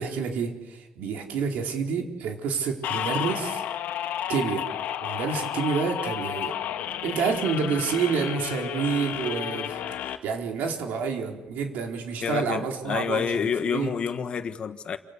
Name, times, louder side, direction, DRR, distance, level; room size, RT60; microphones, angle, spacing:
voice 1, 0.0-3.6 4.3-4.7 5.0-6.6 7.0-9.8 10.0-13.4 13.7-13.9, right 5 dB, 80° right, 4.4 m, -28 dB
sound 1, 2.8-10.2, left 10 dB, 90° left, 1.7 m, -32 dB
voice 2, 12.2-15.0, left 7 dB, 40° left, 1.3 m, -28 dB
29.5 x 26.5 x 6.9 m
cardioid pair, 180°, 3 cm